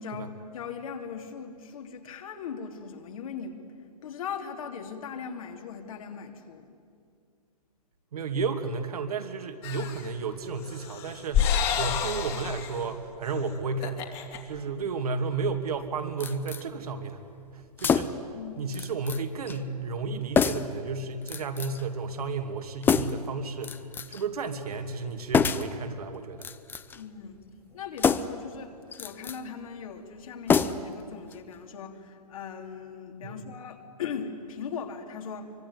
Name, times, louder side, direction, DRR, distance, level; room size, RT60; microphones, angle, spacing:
voice 1, 0.0-3.6 4.0-6.7 18.3-18.7 26.9-27.4 27.7-35.5, left 6 dB, 60° left, 3 dB, 3.1 m, -39 dB
voice 2, 8.1-14.0 14.5-17.2 17.5-18.2 18.6-23.8 24.1-26.5 33.2-33.4, right 4 dB, 65° right, 6 dB, 2.6 m, -32 dB
sound 1, 9.6-10.1 10.6-12.8 13.2-13.4 13.7-14.4, left 8 dB, 30° left, 2.5 m, -29 dB
sound 2, 16.2-16.6 17.8-18.3 18.7-19.2 19.5-19.6 20.4-20.8 21.3-21.8 22.8-23.3 23.6-24.2 25.3-25.8 26.3-27.0 28.0-28.4 28.9-29.4 30.5-31.0 31.3-31.4, left 6 dB, 10° left, 0.6 m, -26 dB
24.5 x 24.0 x 9.7 m, 2.3 s
hypercardioid pair, 130°, 20 cm